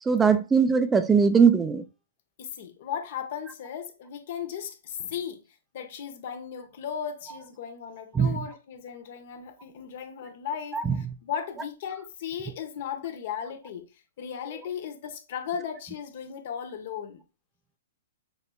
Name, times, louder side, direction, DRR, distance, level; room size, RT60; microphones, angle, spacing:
voice 1, 0.0-1.8 8.1-8.4 10.7-11.1, right 6 dB, 15° right, 0.3 m, -21 dB
voice 2, 2.4-5.4 5.7-13.9 14.2-17.2, left 8 dB, 55° left, 0.9 m, -36 dB
5.9 x 3.1 x 2.3 m
hypercardioid pair, 130°, 0 cm